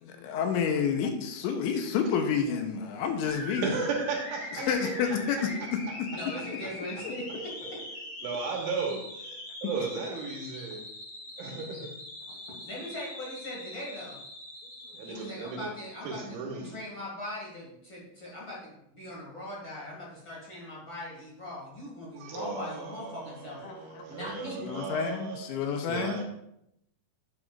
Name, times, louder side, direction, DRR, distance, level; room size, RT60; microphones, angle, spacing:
voice 1, 0.0-3.7 4.7-6.1 23.6-24.1 24.6-26.2, left 6 dB, 80° left, 5 dB, 2.9 m, -29 dB
sound 1, 3.3-15.6, left 1 dB, 60° left, 5.9 m, -42 dB
voice 2, 3.6-4.9 5.4-6.0 6.6-6.7 8.2-10.8 11.4-11.9 14.9-15.7 16.0-16.8 22.2-25.4 25.9-26.2, right 4 dB, 75° right, 1 dB, 3.5 m, -35 dB
voice 3, 4.6-5.6 6.1-7.8 12.5-14.2 15.0-16.4 16.6-23.6 24.1-24.7, left 1 dB, 40° left, -5 dB, 1.8 m, -40 dB
10.5 x 9.8 x 2.5 m, 0.78 s
omnidirectional pair, 5.8 m